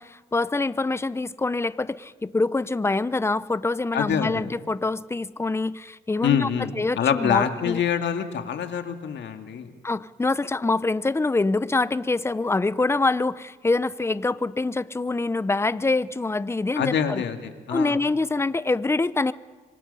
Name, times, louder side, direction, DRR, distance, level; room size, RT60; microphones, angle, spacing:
voice 1, 0.0-6.5 6.7-7.8 9.8-17.2 17.7-19.3, left 3 dB, 15° left, 17 dB, 0.7 m, -25 dB
voice 2, 3.9-4.4 6.2-9.7 16.8-18.0, left 8 dB, 65° left, 6 dB, 2.2 m, -25 dB
26.0 x 24.0 x 5.6 m, 1.4 s
cardioid pair, 90°, 20 cm